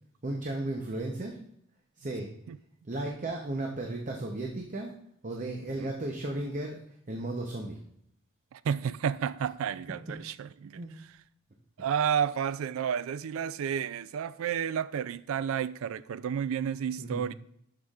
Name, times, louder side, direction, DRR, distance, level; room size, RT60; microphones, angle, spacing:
voice 1, 0.2-1.5 2.0-2.3 2.9-4.9 5.2-6.8 7.1-7.8 10.8-10.9 17.0-17.3, right 2 dB, 35° right, 0.7 m, -35 dB
voice 2, 8.5-11.1 11.8-17.3, right 8 dB, 65° right, 0.3 m, -31 dB
11.5 x 5.7 x 2.4 m
head